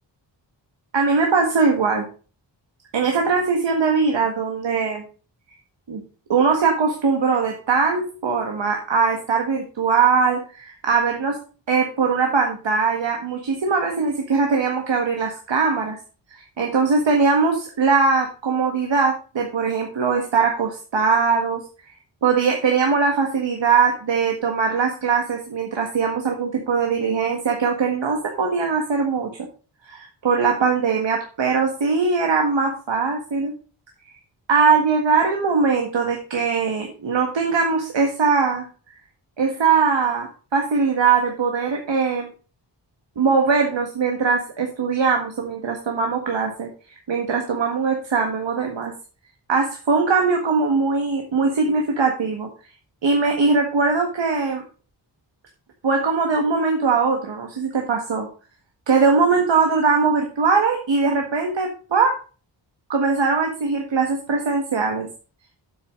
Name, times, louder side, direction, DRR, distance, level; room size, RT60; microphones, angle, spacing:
voice 1, 0.9-2.1 2.9-5.0 5.9-6.0 6.3-11.4 11.7-16.0 16.3-21.6 22.2-29.3 29.9-33.5 34.5-38.7 39.4-42.3 43.2-46.7 47.1-48.9 49.5-52.5 53.0-54.6 55.8-58.3 58.9-62.2 62.9-65.1, right 5 dB, 85° right, 2 dB, 1.7 m, -21 dB
9.5 x 8.1 x 3.8 m, 0.36 s
wide cardioid pair, 125°, 43 cm